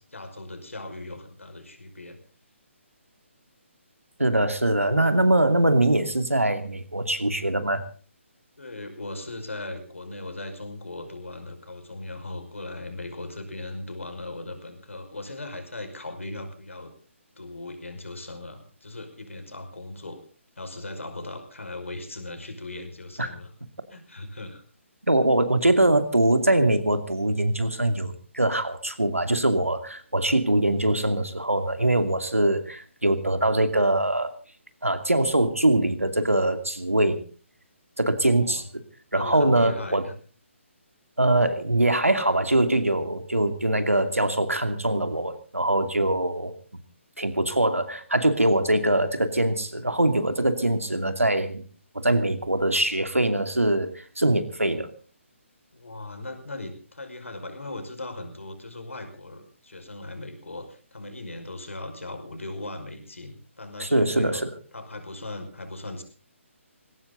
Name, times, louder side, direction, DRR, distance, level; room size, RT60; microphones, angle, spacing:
voice 1, 0.0-2.2 8.6-16.9 17.4-20.2 20.6-23.5 23.9-24.6 38.3-38.7 39.2-40.1 55.7-64.4 64.7-66.0, left 2 dB, 75° left, 7 dB, 5.4 m, -38 dB
voice 2, 4.2-7.8 23.2-23.3 25.1-34.3 34.8-37.2 38.0-38.8 39.1-40.0 41.2-46.8 47.2-51.6 51.9-54.9 63.8-64.5, right 1 dB, 90° right, 8 dB, 2.6 m, -23 dB
20.0 x 17.5 x 4.0 m, 0.39 s
figure-of-eight pair, 140°, 7 cm